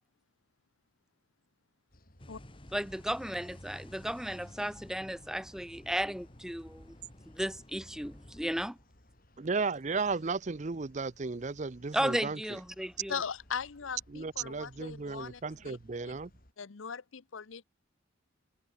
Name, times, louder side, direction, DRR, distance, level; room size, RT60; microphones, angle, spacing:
sound 1, 1.9-16.5, left 1 dB, 45° left, 7.1 m, -62 dB
sound 2, 2.2-8.7, left 1 dB, 25° left, 1.9 m, -52 dB
voice 1, 2.7-6.9 7.3-8.8 11.9-13.2, equal, 5° right, 0.9 m, -34 dB
voice 2, 9.4-12.4 14.1-16.3, right 4 dB, 35° right, 0.6 m, -34 dB
voice 3, 13.1-15.8 16.0-16.2 16.6-17.6, left 6 dB, 80° left, 0.8 m, -39 dB
head